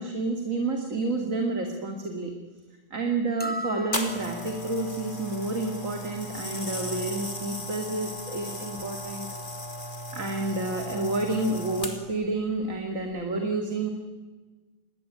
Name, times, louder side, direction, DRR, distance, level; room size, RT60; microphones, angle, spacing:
voice 1, 0.0-2.3 2.9-9.3 10.1-13.9, right 2 dB, 85° right, 3 dB, 2.9 m, -29 dB
sound 1, 3.4-4.7, right 1 dB, 10° left, 0.7 m, -37 dB
sound 2, 3.9-12.2 13.0-13.2, left 1 dB, 40° left, 3.1 m, -36 dB
27.5 x 21.5 x 9.5 m, 1.3 s
omnidirectional pair, 1.3 m